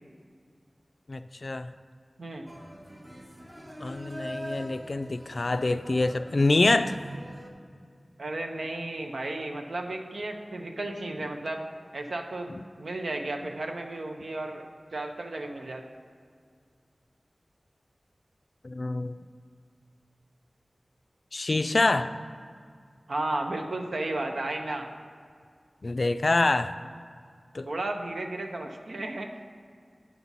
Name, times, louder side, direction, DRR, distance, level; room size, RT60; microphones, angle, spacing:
voice 1, 1.1-1.7 3.8-7.0 12.5-12.6 18.6-19.2 21.3-22.1 25.8-26.7 27.5-27.7, left 2 dB, 60° left, 10 dB, 0.3 m, -26 dB
sound 1, 2.5-7.5, equal, 20° right, 0.9 m, -43 dB
voice 2, 8.2-11.7 11.9-12.5 12.8-14.7 14.9-15.8 23.1-24.9 27.7-29.3, right 2 dB, 85° right, 3 dB, 0.7 m, -33 dB
9.3 x 4.1 x 5.9 m, 2.2 s
wide cardioid pair, 70°, 0 cm